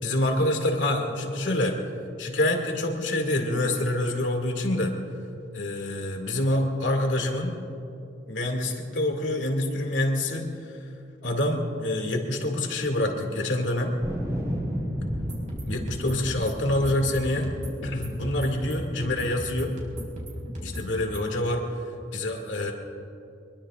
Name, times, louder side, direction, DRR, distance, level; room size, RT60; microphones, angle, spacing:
voice 1, 0.0-1.8 2.2-4.9 5.5-7.6 8.3-10.8 11.2-14.0 15.6-17.5 17.8-19.7 20.6-21.6 22.1-22.7, left 1 dB, 90° left, 2 dB, 2.4 m, -26 dB
sound 1, 14.0-19.2 19.8-20.6, equal, 20° right, 3.7 m, -34 dB
sound 2, 15.1-21.3, equal, 45° right, 4.3 m, -37 dB
24.5 x 22.0 x 2.5 m, 2.7 s
head